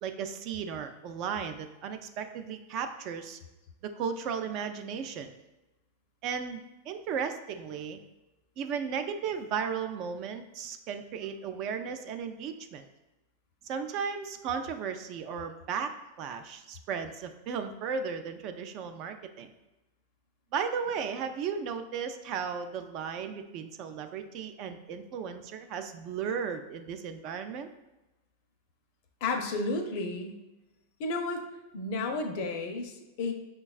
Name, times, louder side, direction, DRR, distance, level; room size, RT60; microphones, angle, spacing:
voice 1, 0.0-3.4 3.8-5.3 6.2-8.0 8.6-12.8 13.6-15.9 16.2-19.5 20.5-27.7, right 6 dB, 45° right, 8 dB, 0.3 m, -35 dB
voice 2, 29.2-30.4 31.0-31.4 31.7-33.3, left 3 dB, 55° left, 5 dB, 0.5 m, -32 dB
5.4 x 2.2 x 2.3 m, 1.0 s
supercardioid pair, 135°, 0 cm